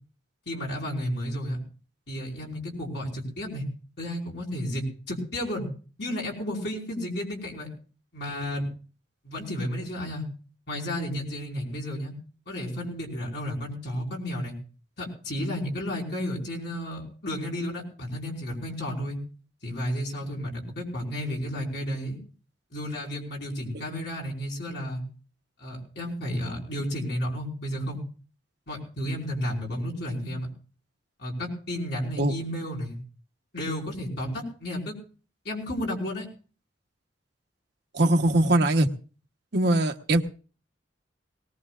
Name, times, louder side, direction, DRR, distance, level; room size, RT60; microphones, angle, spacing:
voice 1, 0.5-1.6 2.1-3.6 4.0-5.7 6.0-7.7 8.1-8.7 9.2-10.3 10.7-12.1 12.5-14.5 15.0-19.2 19.6-22.2 22.7-25.0 25.6-28.0 28.7-30.5 31.2-33.0 33.5-35.0 35.4-36.3, equal, 65° left, -2 dB, 5.0 m, -32 dB
voice 2, 37.9-38.9 39.5-40.2, right 1 dB, 60° right, 4 dB, 1.1 m, -21 dB
21.0 x 18.5 x 2.5 m, 0.38 s
head